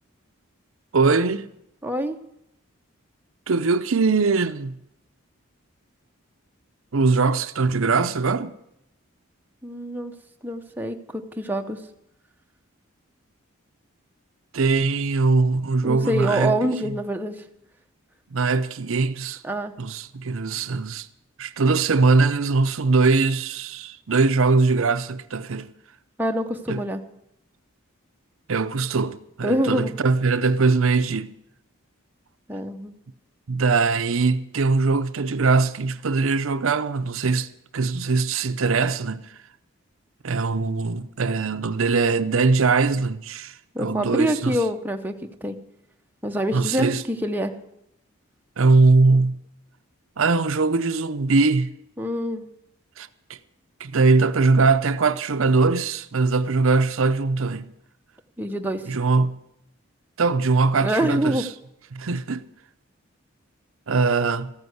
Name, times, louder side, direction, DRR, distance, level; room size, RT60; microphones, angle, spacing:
voice 1, 0.9-1.5 3.5-4.8 6.9-8.5 14.5-16.6 16.8-16.9 18.3-19.4 19.8-21.1 21.4-25.7 26.7-26.8 28.5-31.3 33.5-39.3 40.2-44.6 46.5-47.0 48.6-49.4 50.2-51.7 53.0-53.4 53.8-57.7 58.9-59.4 60.2-61.5 61.9-62.5 63.9-64.5, right 4 dB, 75° right, 0.7 m, -21 dB
voice 2, 1.8-2.2 9.6-10.1 10.4-11.8 15.8-17.3 19.4-19.7 26.2-27.0 29.4-29.9 32.5-32.9 43.7-45.6 46.2-47.5 52.0-52.5 58.4-58.8 60.8-61.4, right 1 dB, 10° right, 0.8 m, -25 dB
14.5 x 9.7 x 8.0 m
head